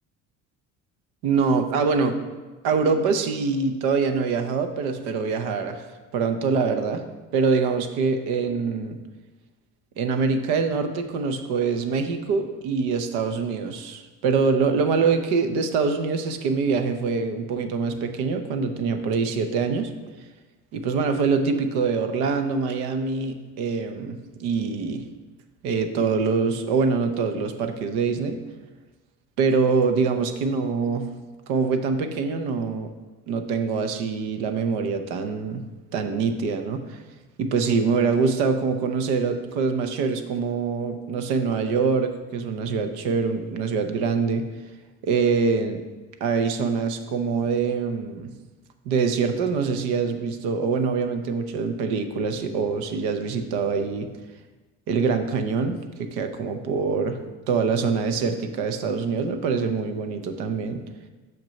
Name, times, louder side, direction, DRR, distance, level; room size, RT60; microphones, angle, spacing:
voice 1, 1.2-2.2 2.6-5.9 6.1-7.0 7.3-9.0 10.0-19.9 20.7-25.0 25.6-28.4 29.4-31.1 31.5-32.9 33.3-35.6 35.9-37.0 37.4-44.5 45.0-45.8 46.2-48.3 48.8-54.1 54.9-57.2 57.5-60.8, right 5 dB, 85° right, 7 dB, 0.9 m, -24 dB
6.1 x 6.0 x 5.2 m, 1.3 s
supercardioid pair, 80°, 37 cm